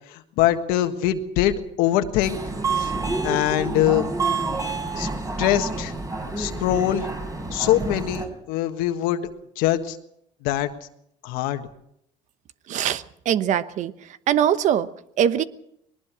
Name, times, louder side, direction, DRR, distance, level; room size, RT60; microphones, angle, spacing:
voice 1, 0.1-2.4 2.8-2.9 3.2-4.1 5.0-5.1 5.4-5.9 6.4-7.1 7.5-9.2 9.6-10.0 10.4-10.7 11.2-11.6, left 13 dB, 85° left, 8 dB, 1.6 m, -23 dB
Subway metro underground, 2.2-8.3, right 3 dB, 25° right, 4.3 m, -28 dB
voice 2, 12.7-13.9 14.3-14.9 15.2-15.4, right 9 dB, 55° right, 14 dB, 1.0 m, -22 dB
21.5 x 19.5 x 6.2 m, 0.74 s
cardioid pair, 105°, 14 cm